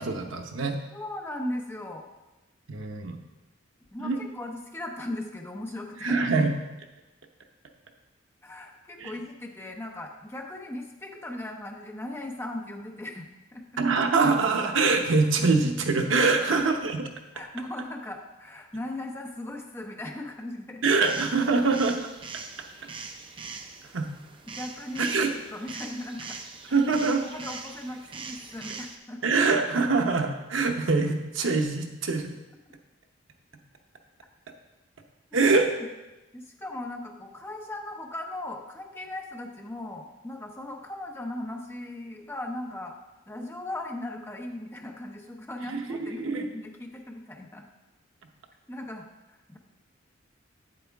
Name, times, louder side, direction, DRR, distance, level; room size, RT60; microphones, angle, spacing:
voice 1, 0.0-0.8 2.7-3.2 4.0-4.2 6.0-6.5 9.0-9.1 13.8-17.0 20.8-22.0 23.9-24.1 25.0-25.3 26.7-27.2 29.2-32.3 35.3-35.7 45.7-46.5, right 4 dB, 80° right, 4 dB, 0.9 m, -24 dB
voice 2, 0.9-2.1 3.9-6.2 8.4-13.8 16.4-16.5 17.3-20.8 24.5-25.2 25.5-26.4 26.7-26.8 27.2-29.2 35.3-35.4 36.3-42.9 43.3-47.7 48.7-49.1 49.5-49.6, left 1 dB, 10° left, 2 dB, 0.7 m, -38 dB
sound 1, 20.9-29.0, right 4 dB, 25° right, 0.5 m, -42 dB
8.3 x 7.9 x 3.5 m, 1.0 s
head